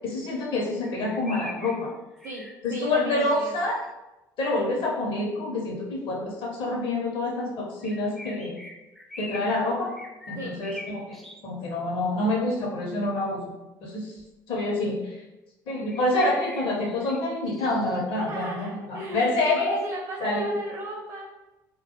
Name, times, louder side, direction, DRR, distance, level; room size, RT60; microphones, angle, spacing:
voice 1, 0.0-1.9 2.6-3.8 4.4-8.6 9.2-9.9 10.3-13.4 13.8-14.1 14.5-15.2 15.7-19.8 20.2-20.5, left 2 dB, 55° left, -1 dB, 0.7 m, -27 dB
sound 1, 0.8-3.9 7.8-9.6 9.9-11.4 14.2-14.3 15.9-18.3 19.8-19.9, left 1 dB, ahead, 0.4 m, -43 dB
voice 2, 2.7-3.6 10.3-10.5 18.3-21.2, right 2 dB, 45° right, -3 dB, 0.6 m, -35 dB
2.2 x 2.1 x 2.9 m, 1.0 s
hypercardioid pair, 60°, 10 cm